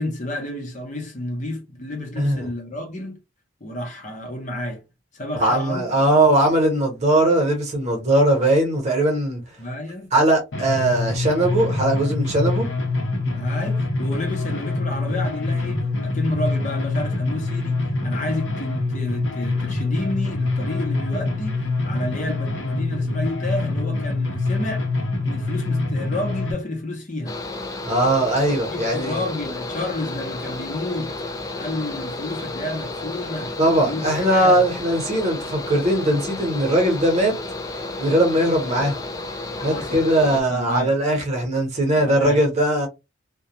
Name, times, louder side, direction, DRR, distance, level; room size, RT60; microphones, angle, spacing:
voice 1, 0.0-3.2 3.6-4.8 5.1-6.2 9.6-10.1 13.3-24.9 25.2-27.4 28.7-31.1 31.6-33.5 33.9-34.6 39.6-40.0 40.3-40.9 41.9-42.4, left 1 dB, 40° left, 0.7 m, -30 dB
voice 2, 2.2-2.5 5.4-9.4 10.1-12.7 27.8-29.2 33.6-37.4 38.0-39.0 39.6-42.9, right 1 dB, 35° right, 0.9 m, -20 dB
sound 1, 10.5-26.5, left 3 dB, 70° left, 0.7 m, -25 dB
Mechanical fan, 27.3-40.4, left 2 dB, 20° left, 0.3 m, -32 dB
2.3 x 2.2 x 2.8 m
head